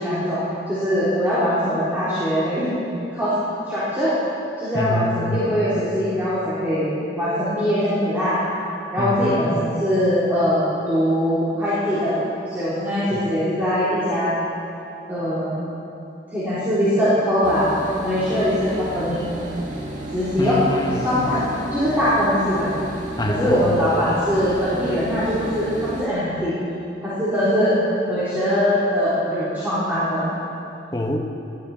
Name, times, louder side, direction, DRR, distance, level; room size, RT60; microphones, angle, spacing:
voice 1, 0.0-2.7 3.1-3.4 3.7-4.1 4.6-8.4 8.9-12.2 12.5-14.3 15.1-15.6 16.3-17.7 18.0-19.2 20.1-20.6 21.0-21.4 21.7-22.7 23.3-26.5 27.0-27.8 28.1-30.3, equal, 10° right, -13 dB, 3.7 m, -22 dB
voice 2, 4.7-5.4 9.0-9.6 13.1-13.2 20.4-21.2 23.2-23.7 30.9-31.2, left 1 dB, 20° left, 3 dB, 1.1 m, -26 dB
sound 1, 17.4-26.1, right 1 dB, 45° right, 2.0 m, -33 dB
18.5 x 14.0 x 4.4 m, 2.8 s
head